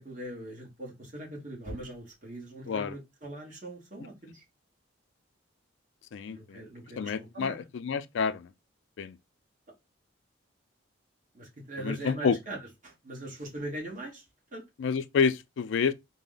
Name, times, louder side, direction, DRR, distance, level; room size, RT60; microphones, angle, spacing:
voice 1, 0.0-4.4 6.3-7.6 11.3-14.2 14.5-14.6, right 1 dB, 40° right, 1.2 m, -41 dB
voice 2, 6.1-6.6 7.0-8.5 9.0-9.2 11.8-12.4 14.8-15.9, left 6 dB, 70° left, 0.4 m, -29 dB
4.2 x 2.1 x 3.8 m
head